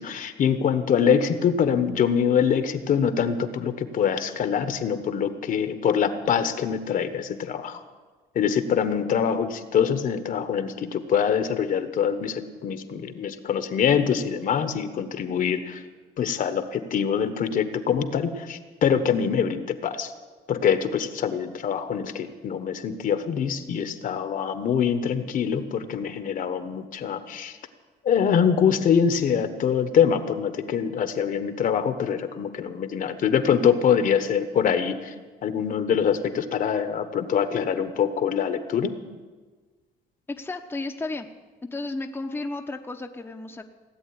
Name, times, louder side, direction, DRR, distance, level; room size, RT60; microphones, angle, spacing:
voice 1, 0.0-7.8 8.3-15.8 16.2-20.1 20.5-27.6 28.0-35.1 35.4-38.9, left 7 dB, 55° left, 10 dB, 1.3 m, -24 dB
voice 2, 40.3-41.3 41.7-43.7, left 2 dB, 15° left, 3 dB, 0.9 m, -33 dB
17.5 x 8.0 x 9.7 m, 1.4 s
cardioid pair, 110°, 17 cm